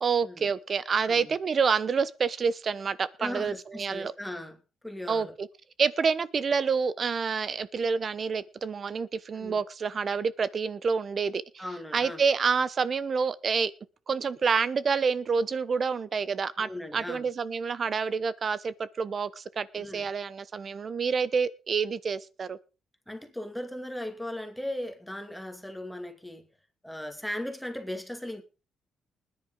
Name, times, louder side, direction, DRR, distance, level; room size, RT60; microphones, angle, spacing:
voice 1, 0.0-4.1 5.1-5.5 5.8-11.4 11.9-13.7 14.1-22.6, right 5 dB, 45° right, 1.0 m, -28 dB
voice 2, 1.1-1.4 3.2-4.6 4.8-5.3 9.3-9.6 11.6-12.2 16.6-17.2 19.8-20.1 23.1-26.5 26.8-28.4, left 1 dB, 5° left, 2.5 m, -38 dB
20.0 x 10.0 x 3.9 m
cardioid pair, 90°, 0 cm